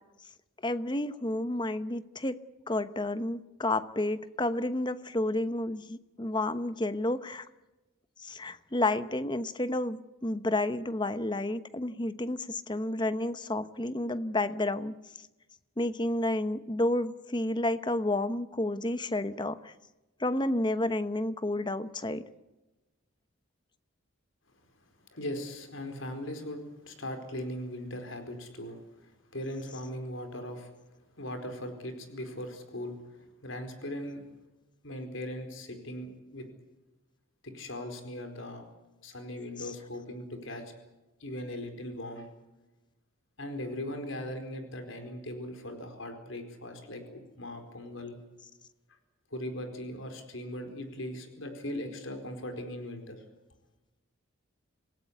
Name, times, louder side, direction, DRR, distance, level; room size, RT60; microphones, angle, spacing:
voice 1, 0.6-2.4 2.7-7.5 8.2-14.9 15.8-19.7 20.2-22.2, left 1 dB, 20° left, 13 dB, 0.9 m, -30 dB
voice 2, 25.1-30.7 31.2-34.2 34.8-36.4 37.4-38.6 39.0-40.6 41.2-42.3 43.4-48.2 49.3-53.2, left 1 dB, 70° left, 6 dB, 4.5 m, -39 dB
27.0 x 18.0 x 8.3 m, 1.1 s
head